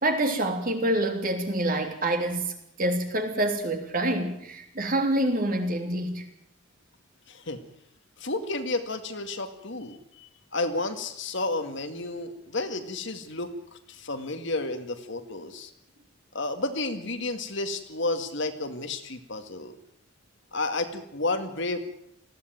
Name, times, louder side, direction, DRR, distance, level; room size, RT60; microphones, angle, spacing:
voice 1, 0.0-2.5 2.8-6.2, right 1 dB, 40° right, 4 dB, 3.2 m, -26 dB
voice 2, 7.3-7.6 8.2-15.7 16.3-19.8 20.5-21.8, left 2 dB, 60° left, 7 dB, 2.1 m, -31 dB
20.0 x 15.5 x 9.3 m, 0.75 s
head